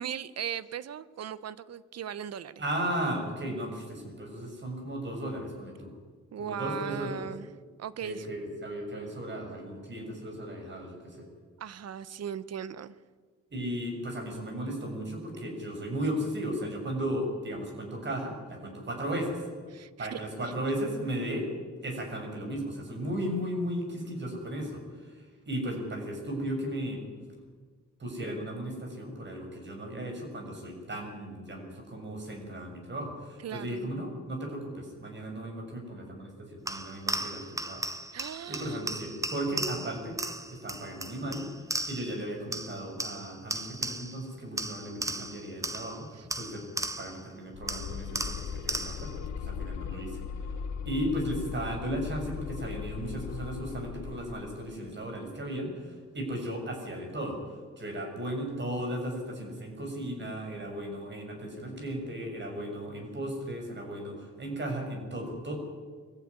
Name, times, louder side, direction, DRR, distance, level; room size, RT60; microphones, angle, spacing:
voice 1, 0.0-2.5 6.3-7.5 7.8-8.3 11.6-13.0 19.7-20.2 33.4-33.9 38.1-38.9, right 8 dB, 55° right, 16 dB, 1.0 m, -38 dB
voice 2, 2.6-5.9 6.4-7.3 8.0-11.3 13.5-19.4 20.0-21.5 21.8-27.0 28.0-37.9 38.5-40.2 40.5-41.5 41.9-46.6 47.0-50.2 50.9-65.6, right 1 dB, 35° right, 3 dB, 7.0 m, -35 dB
sound 1, 36.7-42.2 42.5-44.3 44.6-47.3 47.7-49.2, right 1 dB, 10° right, 1.3 m, -36 dB
sound 2, 47.5-54.8, left 7 dB, 65° left, 1.2 m, -38 dB
21.5 x 14.5 x 9.9 m, 1.5 s
cardioid pair, 90°, 30 cm